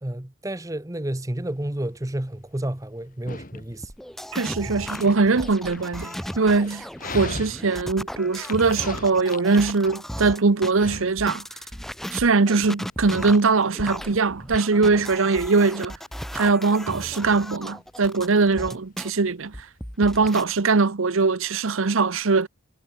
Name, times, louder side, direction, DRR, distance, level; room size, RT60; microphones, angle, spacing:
voice 1, 0.0-3.9 4.6-4.8, right 1 dB, 15° right, 0.9 m, -31 dB
Dog, 1.4-20.6, left 2 dB, 40° left, 4.9 m, -41 dB
sound 1, 3.8-10.7 11.2-19.1 19.5-20.4, equal, ahead, 1.7 m, -36 dB
voice 2, 4.3-6.8 7.1-11.4 12.1-15.9 16.3-19.7 20.0-22.5, right 4 dB, 75° right, 0.8 m, -21 dB
head